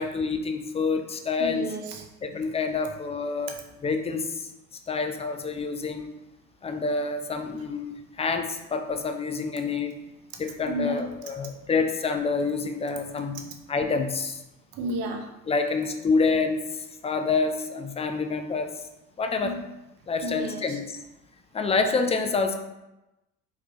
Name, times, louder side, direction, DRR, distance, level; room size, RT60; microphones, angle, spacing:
voice 1, 0.0-1.7 2.2-3.5 3.8-4.5 4.9-6.1 6.6-10.0 10.4-13.4 13.7-14.4 15.5-16.6 17.0-18.7 19.2-19.6 20.1-21.0 21.5-22.5, left 4 dB, 15° left, 6 dB, 0.4 m, -27 dB
voice 2, 1.4-2.1 3.5-3.6 10.7-11.1 13.3-13.6 14.7-15.3 19.4-19.6 20.2-20.8, right 1 dB, 55° right, 4 dB, 0.9 m, -32 dB
4.5 x 3.7 x 3.0 m, 0.95 s
hypercardioid pair, 65°, 44 cm